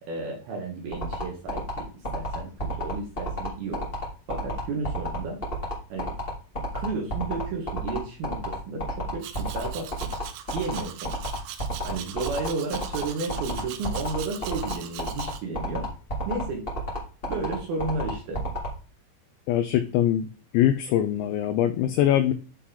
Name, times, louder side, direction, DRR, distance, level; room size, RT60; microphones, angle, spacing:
voice 1, 0.0-1.9 2.1-3.9 4.3-5.4 5.9-6.1 6.7-10.1 10.5-11.1 11.8-15.9 16.3-16.6 17.3-18.4, right 3 dB, 65° right, 1 dB, 2.7 m, -32 dB
sound 1, 0.9-18.7, left 1 dB, 40° left, 0.8 m, -30 dB
Domestic sounds home sounds, 9.2-15.4, right 11 dB, 85° right, 3.2 m, -41 dB
voice 2, 19.5-20.3 20.5-22.3, left 11 dB, 90° left, 9 dB, 2.5 m, -22 dB
10.5 x 4.3 x 3.7 m, 0.37 s
omnidirectional pair, 5.8 m